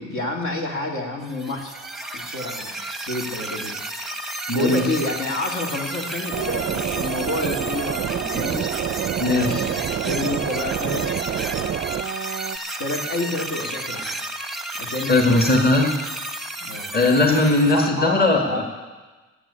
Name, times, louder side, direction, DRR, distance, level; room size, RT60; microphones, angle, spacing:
voice 1, 0.0-1.7 2.1-2.7 3.1-3.8 4.5-8.7 10.0-12.0 12.8-14.1 14.8-15.6 16.6-16.9 17.7-18.6, left 2 dB, 70° left, 1 dB, 2.5 m, -29 dB
sound 1, 1.2-17.9, right 1 dB, ahead, 0.8 m, -32 dB
voice 2, 4.5-4.8 9.2-9.6 15.1-15.9 16.9-18.6, left 2 dB, 30° left, 2 dB, 1.7 m, -18 dB
sound 2, 6.3-12.6, right 9 dB, 40° right, 0.4 m, -27 dB
14.0 x 7.5 x 8.7 m, 1.3 s
cardioid pair, 130°, 31 cm